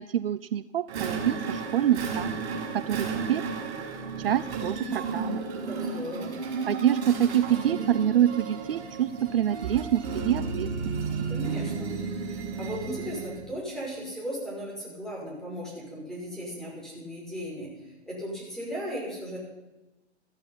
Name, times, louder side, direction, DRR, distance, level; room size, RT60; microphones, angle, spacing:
voice 1, 0.0-2.3 2.7-3.4 4.2-5.4 6.7-11.0, right 11 dB, 60° right, 16 dB, 0.6 m, -26 dB
sound 1, 0.9-13.4, right 4 dB, 35° right, 6.0 m, -33 dB
voice 2, 5.7-6.4 11.3-11.9 12.6-19.4, equal, ahead, -4 dB, 5.8 m, -36 dB
14.5 x 14.0 x 5.7 m, 1.0 s
figure-of-eight pair, 125°, 34 cm